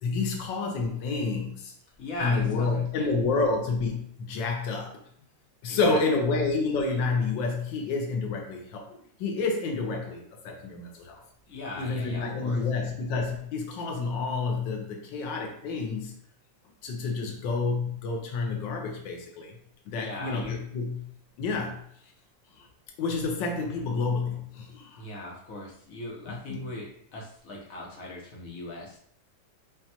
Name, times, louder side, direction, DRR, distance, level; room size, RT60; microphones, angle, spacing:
voice 1, 0.0-1.7 2.2-4.9 5.6-8.9 9.2-11.2 11.8-16.1 16.8-19.5 19.9-21.0 21.4-21.8 23.0-25.0 26.5-26.6, left 4 dB, 80° left, 2 dB, 1.4 m, -29 dB
voice 2, 2.0-3.1 5.7-6.0 11.5-12.6 19.9-20.6 25.0-29.0, left 2 dB, 55° left, -2 dB, 1.3 m, -38 dB
5.4 x 2.3 x 2.8 m, 0.64 s
omnidirectional pair, 2.0 m